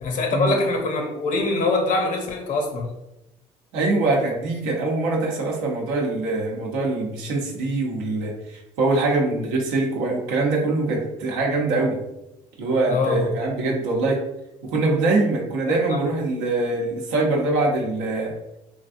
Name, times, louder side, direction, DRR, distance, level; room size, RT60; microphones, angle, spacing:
voice 1, 0.0-2.9 12.9-13.3 15.7-16.0, left 3 dB, 60° left, 3 dB, 0.7 m, -24 dB
voice 2, 3.7-12.0 12.6-14.2 14.7-18.3, right 2 dB, 80° right, -1 dB, 0.7 m, -23 dB
3.1 x 2.5 x 2.5 m, 0.90 s
hypercardioid pair, 65°, 15 cm